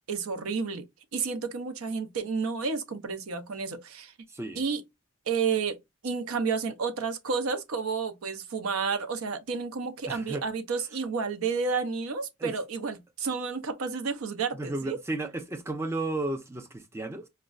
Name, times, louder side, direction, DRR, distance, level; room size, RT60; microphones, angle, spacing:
voice 1, 0.1-0.8 1.1-4.1 4.6-4.8 5.3-5.8 6.0-15.0, right 5 dB, 85° right, 0.6 m, -31 dB
voice 2, 4.3-4.6 10.1-10.4 12.4-12.5 14.5-17.3, right 2 dB, 10° right, 0.4 m, -33 dB
5.0 x 2.2 x 2.3 m
head